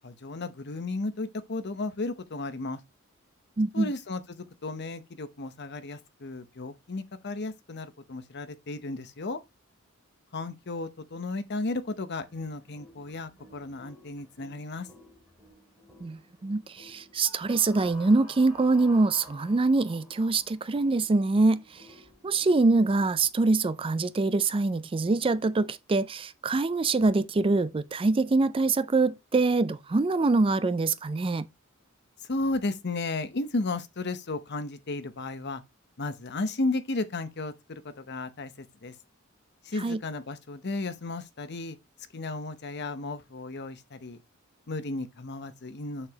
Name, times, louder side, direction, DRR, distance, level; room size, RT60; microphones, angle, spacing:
voice 1, 0.0-2.8 3.7-9.4 10.3-14.9 32.3-35.6 36.0-38.5 38.8-38.9 39.7-41.8 42.1-44.2 44.7-46.1, left 2 dB, 55° left, 0.9 m, -34 dB
voice 2, 3.6-3.9 16.0-21.9 22.2-31.5 39.8-40.0, right 3 dB, 25° right, 0.4 m, -24 dB
sound 1, 12.2-23.3, equal, 5° right, 3.4 m, -53 dB
6.9 x 6.6 x 2.9 m
head